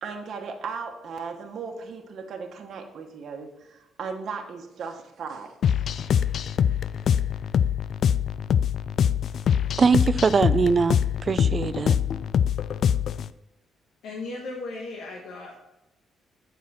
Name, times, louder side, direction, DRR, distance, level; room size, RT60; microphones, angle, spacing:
voice 1, 0.0-5.8, right 5 dB, 60° right, 1.1 m, -37 dB
sound 1, 5.6-13.3, left 8 dB, 65° left, 0.3 m, -24 dB
voice 2, 9.8-12.0, right 5 dB, 40° right, 0.4 m, -22 dB
voice 3, 14.0-15.6, left 2 dB, 85° left, 1.3 m, -36 dB
7.3 x 5.8 x 4.3 m
cardioid pair, 90°, 0 cm